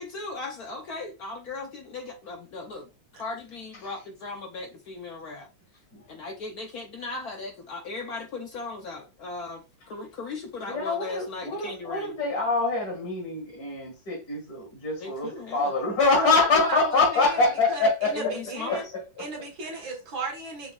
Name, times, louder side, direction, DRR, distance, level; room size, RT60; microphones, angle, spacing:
voice 1, 0.0-5.5 6.1-12.2 15.0-15.7 18.1-18.9, left 3 dB, 75° left, 0.8 m, -37 dB
voice 2, 10.7-18.3 18.7-18.8, left 3 dB, 45° left, 2.2 m, -25 dB
voice 3, 16.1-18.8 19.2-20.7, right 3 dB, 65° right, 2.0 m, -34 dB
5.4 x 3.7 x 2.3 m
omnidirectional pair, 2.4 m